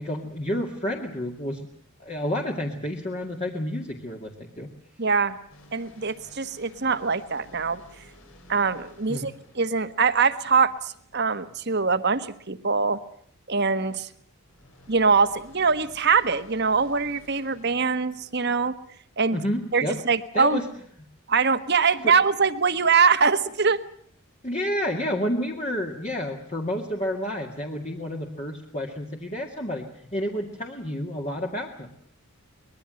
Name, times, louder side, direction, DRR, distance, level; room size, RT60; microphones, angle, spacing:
voice 1, 0.0-1.7 2.0-4.7 9.1-9.3 19.3-20.0 20.3-20.6 22.0-22.1 24.4-29.9 30.1-31.9, equal, 30° left, 0 dB, 2.2 m, -30 dB
voice 2, 5.0-5.4 5.7-7.8 8.5-13.0 13.5-14.1 14.9-18.8 19.2-19.4 19.7-20.6 21.3-23.8, right 5 dB, 50° right, 11 dB, 1.4 m, -23 dB
sound 1, 5.5-11.0 14.5-19.2, left 1 dB, 65° left, 5.1 m, -54 dB
24.0 x 21.0 x 7.8 m, 0.63 s
head